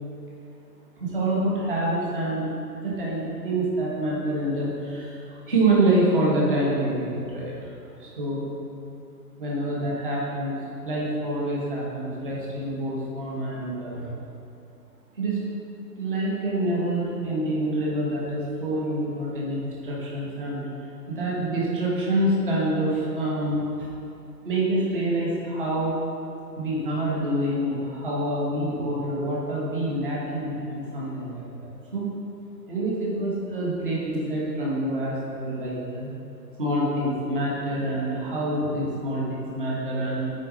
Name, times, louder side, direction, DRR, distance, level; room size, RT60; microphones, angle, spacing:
voice 1, 1.0-2.5 2.8-7.6 8.0-8.4 9.4-14.1 15.1-15.4 16.0-23.9 24.4-26.0 26.6-32.1 32.7-36.1 36.6-40.3, right 1 dB, 30° right, -6 dB, 1.5 m, -26 dB
8.3 x 5.2 x 5.3 m, 2.7 s
hypercardioid pair, 170°, 50 cm